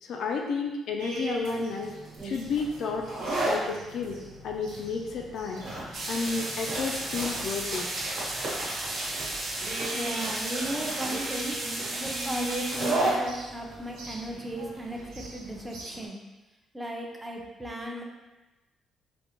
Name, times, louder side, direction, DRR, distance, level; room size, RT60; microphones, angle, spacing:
voice 1, 0.0-1.9 2.2-3.1 3.4-5.7 6.1-7.9, left 4 dB, 70° left, 1 dB, 0.3 m, -31 dB
sound 1, 1.0-16.1, right 1 dB, 90° right, 0.6 m, -42 dB
sound 2, 2.2-15.6, right 2 dB, 65° right, 1.3 m, -34 dB
sound 3, 5.9-12.9, right 2 dB, 45° right, 0.6 m, -34 dB
voice 2, 9.9-11.6 12.0-16.2 16.7-18.0, right 1 dB, 10° right, 0 dB, 0.6 m, -36 dB
3.5 x 2.1 x 2.9 m, 1.1 s
cardioid pair, 90°, 0 cm